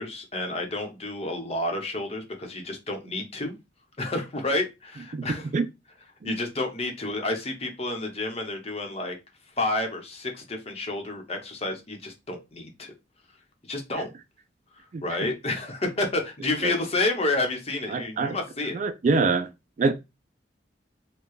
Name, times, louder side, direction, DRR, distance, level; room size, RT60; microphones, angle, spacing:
voice 1, 0.0-3.5 4.0-5.5 6.2-9.2 9.6-12.9 13.7-14.1 14.8-18.8, left 2 dB, 35° left, 0.9 m, -30 dB
voice 2, 14.9-15.3 16.6-16.7 17.9-18.4 18.7-19.5 19.8-19.9, right 4 dB, 45° right, 0.4 m, -25 dB
4.7 x 2.3 x 3.1 m
head